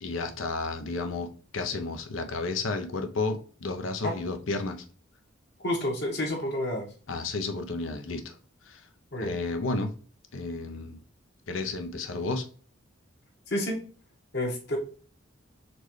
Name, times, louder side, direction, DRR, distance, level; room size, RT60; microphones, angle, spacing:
voice 1, 0.0-4.8 7.1-8.4 8.7-8.8 9.2-9.9 10.3-11.0 11.5-12.5, left 3 dB, 75° left, 0.6 m, -32 dB
voice 2, 5.6-6.8 9.1-9.3 13.5-13.8 14.3-14.8, left 1 dB, 55° left, 1.3 m, -29 dB
4.2 x 3.1 x 3.1 m
head